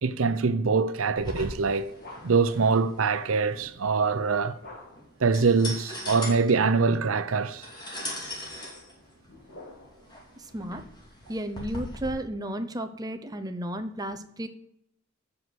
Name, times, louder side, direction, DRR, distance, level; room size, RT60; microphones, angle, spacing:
voice 1, 0.0-1.9 2.2-4.6 5.2-7.7, right 4 dB, 80° right, 0.6 m, -24 dB
sound 1, 1.2-12.1, left 1 dB, 20° left, 2.5 m, -40 dB
sound 2, 1.9-2.6 4.6-5.2 6.6-7.4 8.2-10.1, left 2 dB, 50° left, 2.8 m, -49 dB
voice 2, 10.4-10.8 11.3-14.5, right 1 dB, 20° right, 0.8 m, -33 dB
7.8 x 6.0 x 7.9 m
head